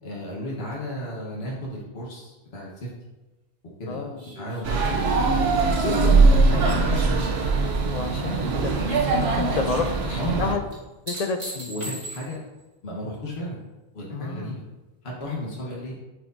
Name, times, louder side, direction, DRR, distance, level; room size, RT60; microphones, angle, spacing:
voice 1, 0.0-2.9 3.8-5.0 5.8-6.6 6.8-7.2 8.2-8.5 10.2-10.5 11.7-12.4 12.8-13.6 13.9-14.6 15.0-16.0, equal, 75° left, -5 dB, 1.5 m, -33 dB
voice 2, 3.9-4.3 7.9-8.5 8.8-10.6 11.1-11.7 14.1-14.6, left 4 dB, 55° left, 7 dB, 0.5 m, -30 dB
sound 1, 4.2-7.6 8.0-8.6 10.7-12.6 15.2-15.3, right 1 dB, 40° right, 1.4 m, -41 dB
sound 2, 4.6-10.5, right 3 dB, 80° right, 1.0 m, -21 dB
8.7 x 4.7 x 2.6 m, 1.1 s
omnidirectional pair, 1.1 m